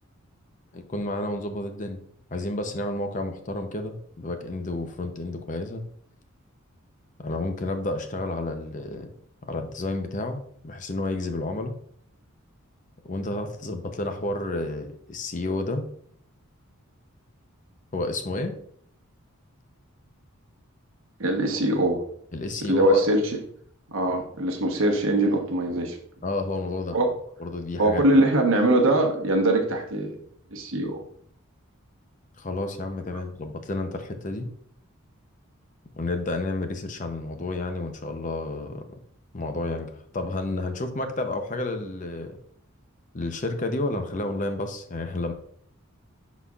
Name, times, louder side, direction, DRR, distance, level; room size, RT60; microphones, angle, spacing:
voice 1, 0.7-2.0 2.3-5.8 7.2-9.1 9.5-11.8 13.0-15.9 17.9-18.5 22.3-23.0 26.2-27.0 27.4-28.0 32.4-34.5 36.0-38.9 39.3-42.4 43.1-45.3, left 2 dB, 35° left, 6 dB, 0.6 m, -30 dB
voice 2, 21.2-22.0 22.7-23.2 23.9-26.0 26.9-27.1 27.8-30.2 30.5-31.0, right 1 dB, 65° right, 3 dB, 1.1 m, -22 dB
11.0 x 4.1 x 2.4 m, 0.64 s
head